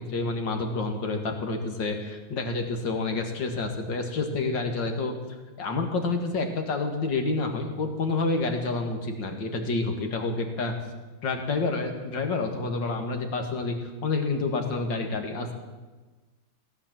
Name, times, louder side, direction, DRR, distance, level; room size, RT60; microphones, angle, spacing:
voice 1, 0.0-5.1 5.6-10.7 11.2-15.5, left 3 dB, 70° left, 4 dB, 2.5 m, -28 dB
17.0 x 11.0 x 7.5 m, 1.3 s
omnidirectional pair, 2.1 m